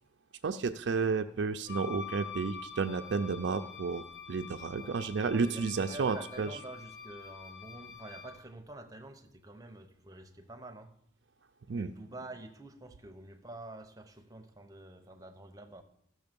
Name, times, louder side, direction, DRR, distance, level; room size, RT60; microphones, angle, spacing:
voice 1, 0.4-6.5 11.7-11.9, right 4 dB, 70° right, 7 dB, 0.4 m, -32 dB
Wind instrument woodwind instrument, 1.6-8.4, left 5 dB, 60° left, 1.2 m, -46 dB
voice 2, 4.7-5.0 5.3-10.9 11.7-15.8, right 2 dB, 20° right, 6 dB, 0.8 m, -48 dB
14.0 x 6.4 x 5.2 m, 0.74 s
head